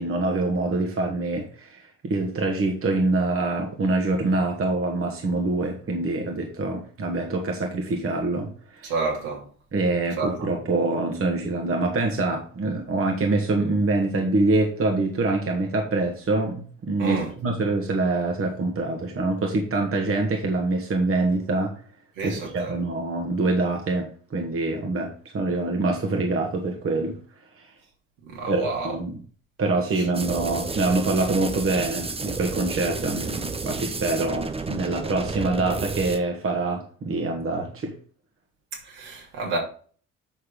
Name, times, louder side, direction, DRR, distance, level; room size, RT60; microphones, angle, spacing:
voice 1, 0.0-8.9 9.7-21.7 22.2-27.2 28.5-29.2 29.6-37.9, right 2 dB, 35° right, 1.8 m, -25 dB
voice 2, 8.8-9.4 10.2-10.5 17.0-17.3 22.2-22.8 28.2-28.9 30.0-30.1 38.7-39.6, right 3 dB, 65° right, 3.1 m, -29 dB
sound 1, 30.1-36.2, right 4 dB, 15° right, 0.9 m, -31 dB
8.2 x 6.4 x 3.9 m
figure-of-eight pair, 50°, 40 cm